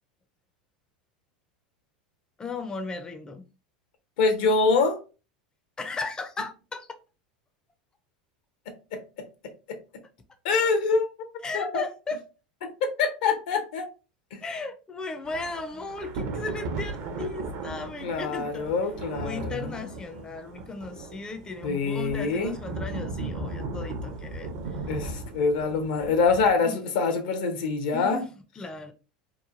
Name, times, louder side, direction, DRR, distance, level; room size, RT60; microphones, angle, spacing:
voice 1, 2.4-3.4 5.8-6.9 11.4-12.2 14.4-18.7 19.1-24.8 26.6-26.8 27.9-28.3 28.6-28.9, left 3 dB, 15° left, 0.4 m, -36 dB
voice 2, 4.2-5.0 8.9-9.0 9.7-9.8 10.4-11.1 11.5-11.8 12.8-13.9 14.3-14.4 18.0-19.9 21.6-22.5 24.9-28.2, left 4 dB, 70° left, 0.7 m, -25 dB
Thunder / Rain, 15.2-26.6, right 2 dB, 60° right, 0.6 m, -37 dB
3.0 x 2.2 x 2.4 m
hypercardioid pair, 90°, 4 cm